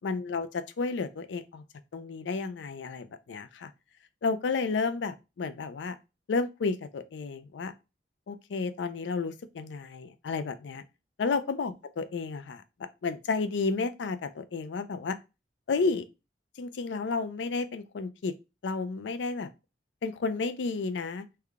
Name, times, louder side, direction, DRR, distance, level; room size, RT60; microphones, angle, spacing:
voice 1, 0.0-1.6 1.9-3.7 4.2-6.0 6.3-7.7 8.3-10.8 11.2-12.6 13.0-15.2 15.7-16.1 16.6-18.3 18.6-19.5 20.0-21.3, left 4 dB, 80° left, 0.4 m, -32 dB
3.4 x 2.2 x 3.5 m
head